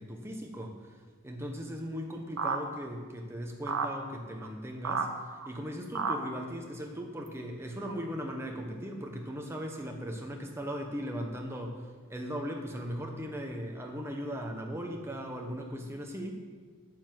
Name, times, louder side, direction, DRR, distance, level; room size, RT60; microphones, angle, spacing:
voice 1, 0.0-5.1 5.5-16.4, equal, 10° right, 2 dB, 1.1 m, -38 dB
sound 1, 2.4-2.6 3.6-3.9 4.4-4.5 4.8-5.1 5.4-5.5 5.9-6.2 7.3-7.4 7.9-8.0, right 5 dB, 90° right, 1.0 m, -30 dB
9.3 x 7.2 x 7.6 m, 1.5 s
head